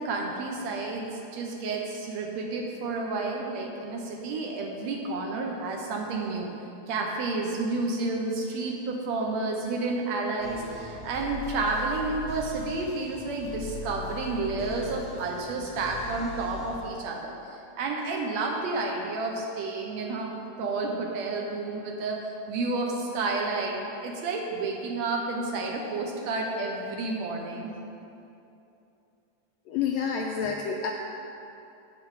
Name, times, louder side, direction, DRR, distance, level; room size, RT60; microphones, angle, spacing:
voice 1, 0.0-6.5 6.9-27.8, right 3 dB, 70° right, 0 dB, 1.8 m, -31 dB
sound 1, 10.4-16.8, left 3 dB, 40° right, 2.6 m, -40 dB
voice 2, 29.7-30.9, left 6 dB, 80° left, 1 dB, 1.6 m, -28 dB
8.7 x 8.3 x 4.7 m, 2.8 s
omnidirectional pair, 3.5 m